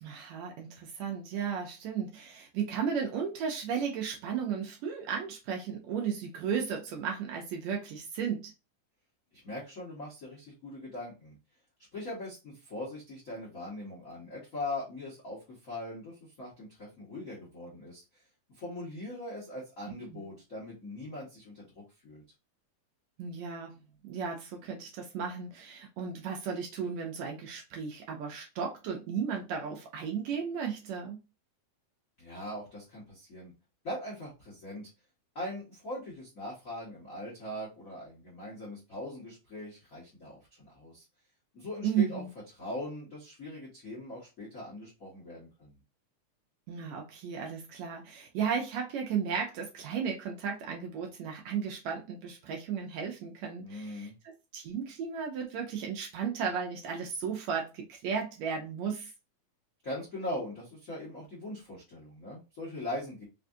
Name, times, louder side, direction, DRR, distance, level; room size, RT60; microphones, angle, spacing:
voice 1, 0.0-8.5 20.1-20.3 23.2-31.2 41.8-42.3 46.7-59.1, right 7 dB, 75° right, 1.7 m, -34 dB
voice 2, 9.3-11.3 11.9-18.2 18.5-22.2 32.2-33.5 33.8-34.9 35.3-41.0 41.5-42.2 42.5-45.8 53.6-54.1 59.8-63.2, left 1 dB, 75° left, 0.7 m, -41 dB
4.9 x 2.4 x 2.6 m
omnidirectional pair, 3.6 m